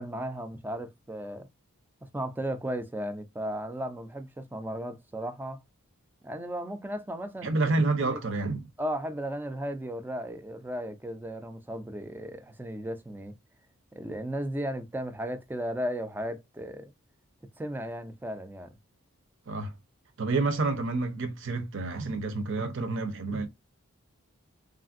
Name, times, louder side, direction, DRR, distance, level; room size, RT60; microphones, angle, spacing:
voice 1, 0.0-1.5 2.1-5.6 6.2-7.7 8.1-8.2 8.8-13.3 13.9-16.9 17.6-18.7, equal, 10° right, 0.3 m, -35 dB
voice 2, 7.4-8.7 19.5-19.7 20.2-23.5, right 3 dB, 60° right, 0.6 m, -29 dB
3.2 x 2.5 x 2.5 m
head